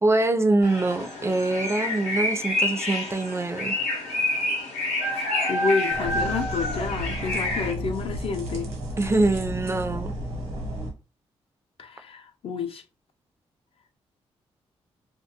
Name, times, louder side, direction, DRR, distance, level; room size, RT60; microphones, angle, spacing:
voice 1, 0.0-3.8 9.0-10.1, right 2 dB, 25° right, 0.3 m, -24 dB
sound 1, 0.6-7.7, left 1 dB, 85° left, 0.7 m, -28 dB
voice 2, 5.1-8.7 11.8-12.8, left 5 dB, 55° left, 0.4 m, -29 dB
sound 2, 5.9-10.9, equal, 85° right, 0.9 m, -33 dB
2.2 x 2.2 x 2.8 m
supercardioid pair, 60°, 12 cm